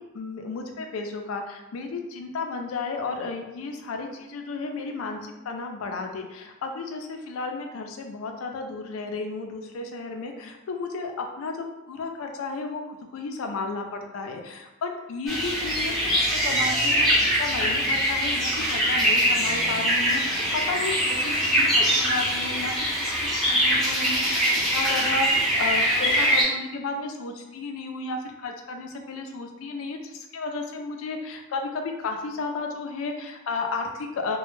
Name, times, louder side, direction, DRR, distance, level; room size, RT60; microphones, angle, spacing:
voice 1, 0.0-16.2 16.4-34.4, left 3 dB, 70° left, 4 dB, 0.4 m, -33 dB
sound 1, 15.3-26.4, equal, ahead, 0.6 m, -23 dB
2.1 x 2.1 x 3.0 m, 1.0 s
head